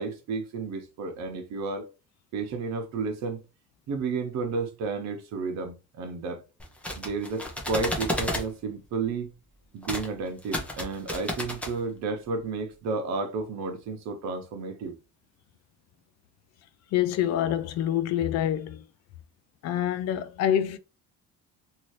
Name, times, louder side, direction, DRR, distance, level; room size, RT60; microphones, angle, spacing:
voice 1, 0.0-1.8 2.3-3.4 3.9-6.4 7.0-9.3 9.7-15.0, right 4 dB, 60° right, 0.8 m, -32 dB
sound 1, 6.6-8.5 9.8-10.1 10.4-11.7, left 1 dB, 5° left, 0.5 m, -32 dB
voice 2, 16.9-18.8 19.6-20.8, left 11 dB, 55° left, 0.4 m, -26 dB
2.7 x 2.6 x 3.1 m
cardioid pair, 165°, 31 cm